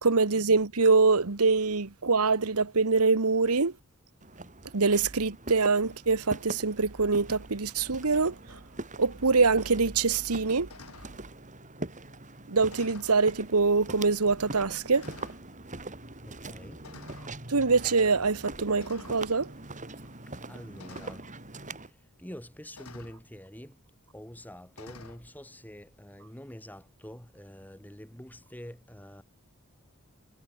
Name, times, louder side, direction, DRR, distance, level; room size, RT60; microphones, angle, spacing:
voice 1, 0.0-3.7 4.7-8.6 9.0-10.7 12.5-15.1 17.5-19.5, right 4 dB, 90° right, 1.3 m, -24 dB
Walk footsteps, 4.2-21.9, right 2 dB, 35° right, 5.6 m, -43 dB
sound 1, 8.5-8.7 10.7-11.2 12.7-13.2 14.1-14.2 14.9-15.4 16.8-17.3 18.8-19.3 20.8-21.2 22.8-23.2 24.7-25.2, left 3 dB, 75° left, 4.7 m, -49 dB
voice 2, 16.3-16.8 20.3-21.3 21.7-23.8 24.1-29.2, equal, 10° left, 7.1 m, -46 dB
head